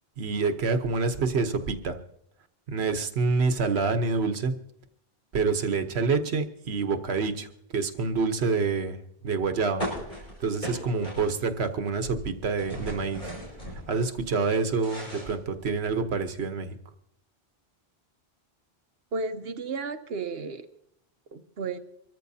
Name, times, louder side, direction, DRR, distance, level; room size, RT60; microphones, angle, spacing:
voice 1, 0.2-2.0 2.7-4.5 5.3-7.5 7.7-9.9 10.1-13.3 13.9-16.7, right 4 dB, 90° right, 8 dB, 1.2 m, -27 dB
sound 1, 9.8-11.7 11.9-14.1 14.5-16.0, equal, 55° left, 5.6 m, -37 dB
voice 2, 19.1-20.7 21.3-21.8, right 4 dB, 75° right, 9 dB, 1.1 m, -33 dB
25.0 x 13.5 x 2.7 m, 0.74 s
omnidirectional pair, 1.1 m